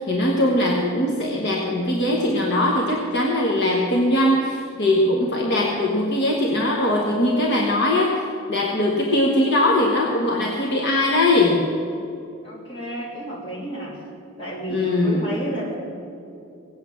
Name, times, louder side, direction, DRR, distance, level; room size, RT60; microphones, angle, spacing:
voice 1, 0.0-8.1 8.5-11.7 14.7-15.2, left 1 dB, 50° left, -1 dB, 1.3 m, -21 dB
voice 2, 12.4-14.0 14.4-15.7, right 1 dB, 25° left, -5 dB, 3.4 m, -31 dB
17.5 x 8.5 x 7.2 m, 2.6 s
head